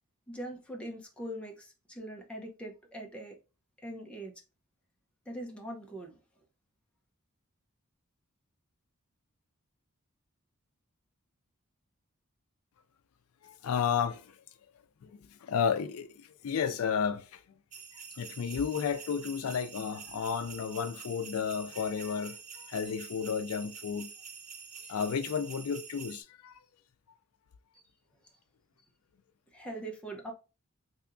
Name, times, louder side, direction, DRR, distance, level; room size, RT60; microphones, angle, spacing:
voice 1, 0.3-3.4 3.8-4.3 5.3-6.2 27.7-27.8 29.5-30.3, right 1 dB, 5° left, 0.6 m, -42 dB
voice 2, 13.4-14.4 15.0-17.4 17.9-24.1 24.8-26.6, left 7 dB, 80° left, 0.4 m, -33 dB
sound 1, 17.7-26.2, right 6 dB, 35° right, 0.4 m, -47 dB
3.4 x 2.8 x 2.5 m
head